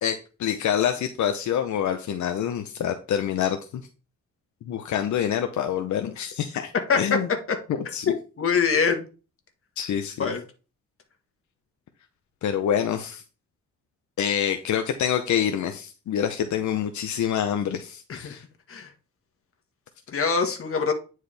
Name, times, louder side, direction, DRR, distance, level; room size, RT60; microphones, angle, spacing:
voice 1, 0.0-3.6 4.6-6.7 7.0-7.3 7.7-8.1 9.8-10.3 12.4-13.2 14.2-18.4, left 9 dB, 80° left, 6 dB, 0.7 m, -26 dB
voice 2, 8.4-9.1 10.2-10.4 18.1-18.3 18.7-18.9 20.1-20.9, left 5 dB, 50° left, 5 dB, 1.6 m, -23 dB
9.5 x 4.7 x 3.4 m, 0.34 s
wide cardioid pair, 130°, 29 cm